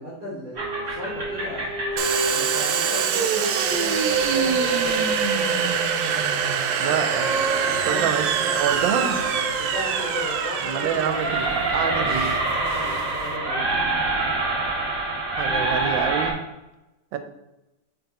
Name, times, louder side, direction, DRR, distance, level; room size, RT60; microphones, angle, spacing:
voice 1, 0.0-1.7 2.3-5.7 7.7-8.2 8.7-11.3 11.7-12.2 12.5-13.6, equal, 20° right, -8 dB, 1.7 m, -35 dB
sound 1, 0.5-16.3, right 3 dB, 50° right, 2.2 m, -27 dB
Domestic sounds home sounds, 2.0-13.3, right 7 dB, 70° right, 1.2 m, -25 dB
voice 2, 6.8-7.4 7.7-9.1 10.6-12.1 15.4-16.4 17.1-17.2, right 8 dB, 90° right, 8 dB, 1.4 m, -27 dB
5.9 x 3.9 x 4.0 m, 0.97 s
omnidirectional pair, 2.1 m